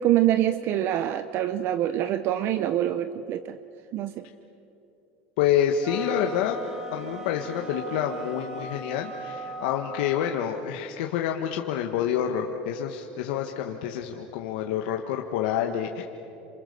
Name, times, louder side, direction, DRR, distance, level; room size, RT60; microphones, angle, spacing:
voice 1, 0.0-3.6 3.9-4.2, right 12 dB, 50° right, 11 dB, 0.8 m, -25 dB
voice 2, 5.4-6.6 6.9-16.0, left 9 dB, 80° left, 3 dB, 1.5 m, -28 dB
sound 1, 5.8-10.5, right 1 dB, 10° right, 2.8 m, -38 dB
28.5 x 26.5 x 7.0 m, 2.8 s
supercardioid pair, 140°, 5 cm